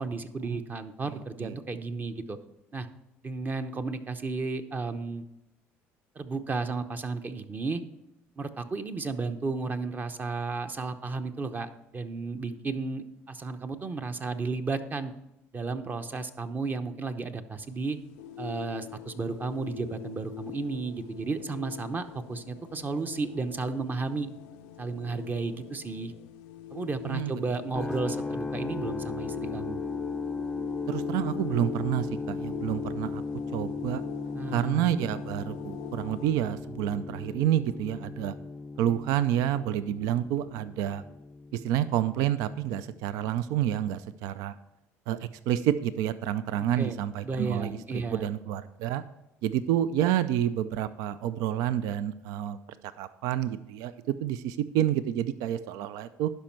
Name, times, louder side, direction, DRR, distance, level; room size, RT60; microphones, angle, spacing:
voice 1, 0.0-2.4 2.7-2.9 3.2-5.2 6.2-7.8 8.4-15.1 15.5-18.0 18.4-24.3 24.8-26.1 26.7-29.8 34.3-34.9 46.8-47.0 47.2-48.3, right 3 dB, 30° right, 9 dB, 0.8 m, -33 dB
sound 1, 17.6-36.3, left 11 dB, 90° left, 0.5 m, -43 dB
voice 2, 27.1-27.4 30.9-33.2 33.5-34.0 34.5-38.3 38.8-41.0 41.5-44.5 45.1-49.0 49.4-52.6 53.0-56.3, right 11 dB, 75° right, 14 dB, 0.4 m, -29 dB
sound 2, 27.7-43.7, left 4 dB, 15° left, 0.4 m, -37 dB
11.5 x 5.3 x 4.5 m, 0.88 s
supercardioid pair, 80°, 6 cm